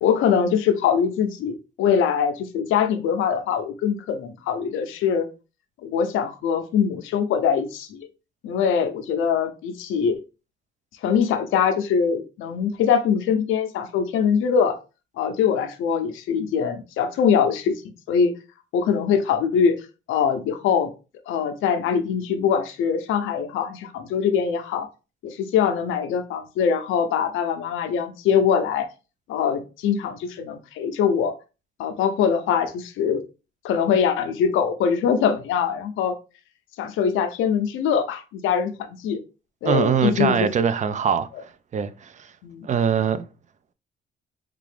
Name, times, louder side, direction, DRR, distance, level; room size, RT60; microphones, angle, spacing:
voice 1, 0.0-5.3 5.8-8.1 8.4-10.2 11.0-14.8 15.2-17.7 18.1-18.3 18.7-19.8 20.1-20.9 21.3-24.9 25.2-28.9 29.3-31.3 31.8-33.2 33.6-36.1 36.8-39.2 39.6-40.4 42.4-42.7, left 7 dB, 85° left, 0.6 m, -22 dB
voice 2, 39.6-42.3 42.6-43.3, right 7 dB, 40° right, 0.4 m, -23 dB
3.6 x 2.4 x 3.3 m
cardioid pair, 90°, 20 cm